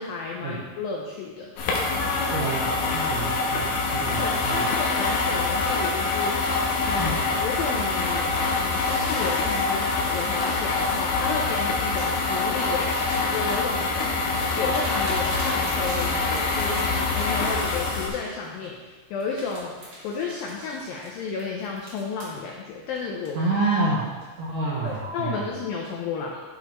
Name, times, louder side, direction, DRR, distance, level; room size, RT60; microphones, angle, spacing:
voice 1, 0.0-1.5 1.9-2.3 4.2-13.8 14.4-19.7 20.0-23.4 24.8-26.4, left 5 dB, 90° left, -1 dB, 2.0 m, -33 dB
sound 1, 1.6-18.1, left 3 dB, 75° left, 2.4 m, -25 dB
voice 2, 2.3-3.7 3.9-4.7 7.0-7.2 23.4-24.1 24.4-25.4, right 3 dB, 75° right, -6 dB, 1.9 m, -28 dB
sound 2, 7.9-18.7 19.2-22.4 22.9-23.9 24.2-24.5 24.9-25.5, right 1 dB, 50° right, 1.9 m, -41 dB
11.0 x 5.2 x 3.0 m, 1.4 s
omnidirectional pair, 5.0 m